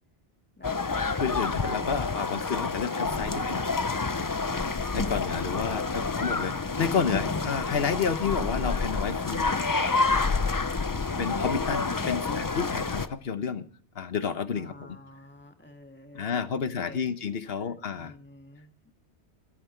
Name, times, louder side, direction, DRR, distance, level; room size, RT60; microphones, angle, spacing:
sound 1, 0.6-13.1, left 4 dB, 25° left, 0.4 m, -28 dB
voice 1, 0.6-2.4 14.5-17.1 17.6-18.9, left 1 dB, 10° left, 1.8 m, -49 dB
voice 2, 1.2-3.6 4.9-9.6 11.2-13.7 13.9-15.0 16.1-18.1, left 6 dB, 65° left, 1.2 m, -30 dB
15.0 x 14.0 x 4.5 m
omnidirectional pair, 1.1 m